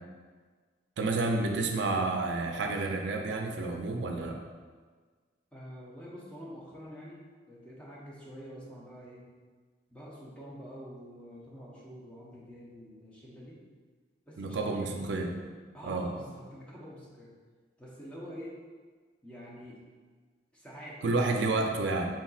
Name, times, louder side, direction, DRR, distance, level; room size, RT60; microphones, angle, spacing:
voice 1, 1.0-4.4 14.4-15.3 15.8-16.1 21.0-22.1, right 3 dB, 85° right, 3 dB, 0.4 m, -30 dB
voice 2, 5.5-7.2 7.5-9.3 9.9-13.6 14.3-15.1 15.7-17.3 17.8-18.6 19.2-19.8 20.5-21.5, equal, 5° left, -6 dB, 0.8 m, -46 dB
4.1 x 3.9 x 2.4 m, 1.5 s
head